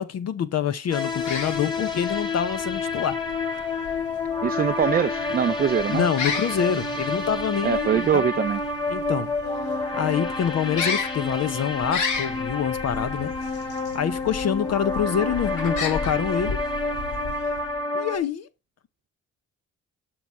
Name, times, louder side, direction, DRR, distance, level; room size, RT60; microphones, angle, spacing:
voice 1, 0.0-3.2 5.9-8.3 8.9-9.3 9.6-13.6 13.9-16.6 17.9-18.5, left 8 dB, 55° left, 0.8 m, -26 dB
sound 1, 0.9-18.2, left 2 dB, 15° left, 2.6 m, -29 dB
sound 2, 1.1-17.8, left 5 dB, 75° left, 2.0 m, -35 dB
voice 2, 4.4-6.0 7.6-8.6, right 8 dB, 30° right, 0.4 m, -23 dB
11.5 x 4.8 x 5.6 m
cardioid pair, 90°, 30 cm